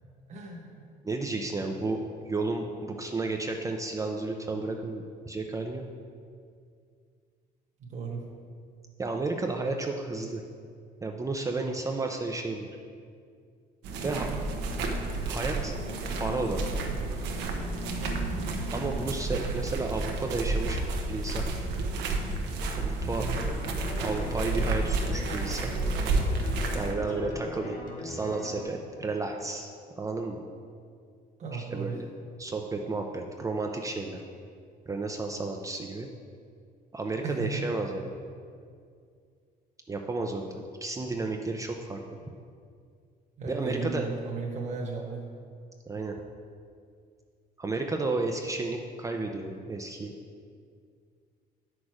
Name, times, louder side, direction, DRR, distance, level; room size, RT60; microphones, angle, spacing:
voice 1, 0.3-0.9 1.6-1.9 7.8-8.2 23.1-23.4 31.4-31.9 37.2-37.6 43.4-45.2, right 4 dB, 45° right, -2 dB, 1.4 m, -35 dB
voice 2, 1.0-2.0 2.3-5.8 9.0-10.4 11.0-12.7 14.0-14.3 15.2-15.7 16.2-16.8 18.7-20.8 21.1-21.5 22.6-23.3 24.0-25.7 26.7-29.7 30.0-30.4 31.5-32.1 32.4-34.2 34.9-36.1 36.9-38.0 39.9-42.0 43.5-44.0 45.9-46.1 47.6-50.1, right 3 dB, 20° right, 2 dB, 0.6 m, -32 dB
sound 1, 13.8-26.9, right 2 dB, 90° right, 1.0 m, -31 dB
sound 2, 13.9-19.1, right 1 dB, 60° right, 1.4 m, -41 dB
sound 3, 23.5-28.6, left 1 dB, 50° left, 2.0 m, -40 dB
8.5 x 6.3 x 4.9 m, 2.2 s
cardioid pair, 110°, 17 cm